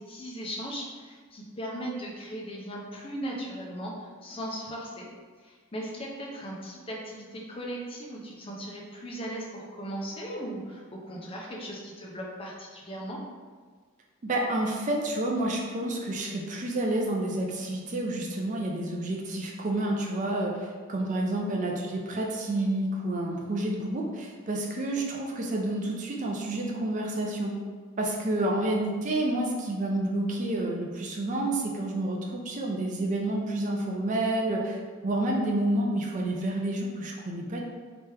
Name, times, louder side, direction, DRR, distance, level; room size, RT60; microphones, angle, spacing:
voice 1, 0.0-5.1 5.4-13.2, right 1 dB, 25° left, -2 dB, 0.5 m, -38 dB
voice 2, 14.2-27.5 28.0-34.8 35.0-37.6, right 1 dB, 35° right, 0 dB, 0.4 m, -29 dB
3.3 x 3.0 x 3.3 m, 1.5 s
head